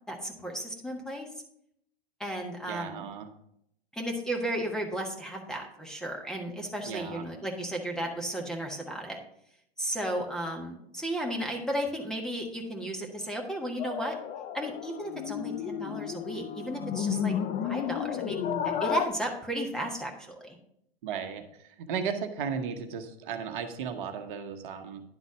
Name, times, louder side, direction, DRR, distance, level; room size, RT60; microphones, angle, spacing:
voice 1, 0.1-1.3 2.2-3.1 3.9-9.2 9.8-14.1 14.5-17.3 17.6-18.4 18.6-20.6, right 1 dB, ahead, 1 dB, 1.3 m, -34 dB
voice 2, 2.7-3.3 6.8-7.2 21.0-25.0, right 6 dB, 55° right, 6 dB, 1.1 m, -35 dB
sound 1, 13.8-19.1, left 9 dB, 25° left, 0.4 m, -32 dB
10.5 x 4.0 x 6.1 m, 0.73 s
hypercardioid pair, 115°, 31 cm